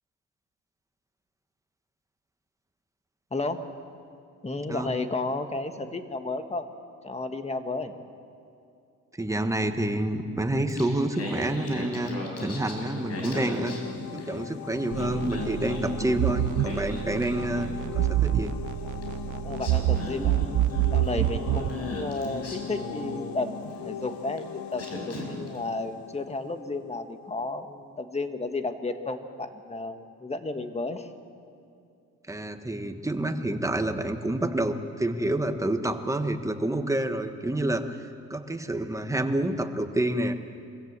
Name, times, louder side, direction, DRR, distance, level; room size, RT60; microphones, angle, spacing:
voice 1, 3.3-3.8 4.4-6.7 7.0-7.9 19.4-20.4 20.9-31.1, left 3 dB, 20° left, 8 dB, 1.5 m, -33 dB
voice 2, 9.2-12.1 12.4-13.7 14.1-18.6 32.3-40.3, right 1 dB, 10° right, 7 dB, 1.4 m, -28 dB
Singing, 10.5-14.5 14.8-18.0 19.0-19.1 19.6-23.8 24.4-24.5 24.8-25.6, left 1 dB, 55° left, 5.3 m, -37 dB
sound 1, 12.4-27.1, left 10 dB, 70° left, 0.7 m, -40 dB
sound 2, 14.9-21.7, right 14 dB, 75° right, 0.7 m, -27 dB
24.0 x 16.5 x 7.4 m, 2.5 s
cardioid pair, 90°, 30 cm